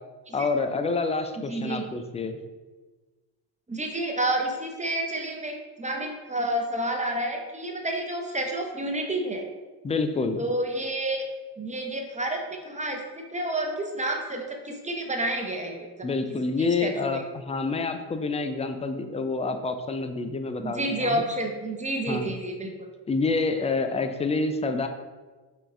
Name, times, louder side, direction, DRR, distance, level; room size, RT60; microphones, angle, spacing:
voice 1, 0.3-2.4 9.8-10.4 16.0-21.2 22.1-22.3 23.1-24.9, left 3 dB, 15° left, 7 dB, 0.3 m, -27 dB
voice 2, 1.5-1.9 3.7-9.4 10.4-11.2 11.6-15.9 16.6-17.2 20.6-22.7, right 1 dB, 15° right, 2 dB, 0.8 m, -29 dB
5.5 x 2.6 x 3.6 m, 1.3 s
supercardioid pair, 65°, 48 cm